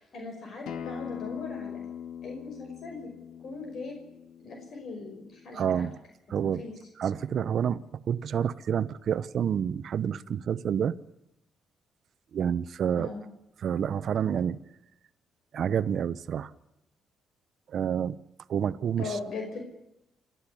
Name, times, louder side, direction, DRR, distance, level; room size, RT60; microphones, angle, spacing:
voice 1, 0.0-1.8 2.2-3.1 3.4-4.0 4.4-5.9 6.4-6.7 12.9-13.2 19.0-19.6, left 3 dB, 60° left, 5.7 m, -39 dB
Acoustic guitar, 0.7-5.9, left 8 dB, 85° left, 1.7 m, -41 dB
voice 2, 5.5-6.0 6.3-6.6 7.0-10.9 12.3-13.1 13.6-14.6 15.5-16.5 17.7-18.2 18.5-19.2, right 8 dB, 60° right, 0.8 m, -28 dB
28.0 x 12.5 x 10.0 m
cardioid pair, 90°, 0 cm